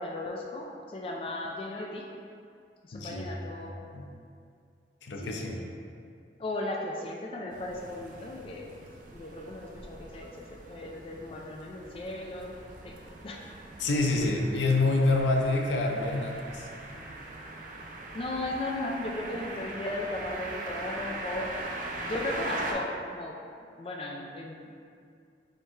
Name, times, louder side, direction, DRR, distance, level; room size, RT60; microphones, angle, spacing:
voice 1, 0.0-2.0 2.8-3.8 5.2-5.8 6.4-8.7 9.1-10.3 10.6-12.5 12.8-13.0 13.2-13.5 18.1-21.5 22.0-23.3 23.8-24.7, left 2 dB, 30° left, -1 dB, 0.3 m, -36 dB
voice 2, 2.9-3.3 3.6-4.1 5.0-5.6 13.8-16.7, left 2 dB, 90° left, 1 dB, 0.5 m, -27 dB
sound 1, 7.5-22.7, right 2 dB, 45° right, 0.4 m, -41 dB
4.5 x 3.4 x 3.1 m, 2.3 s
head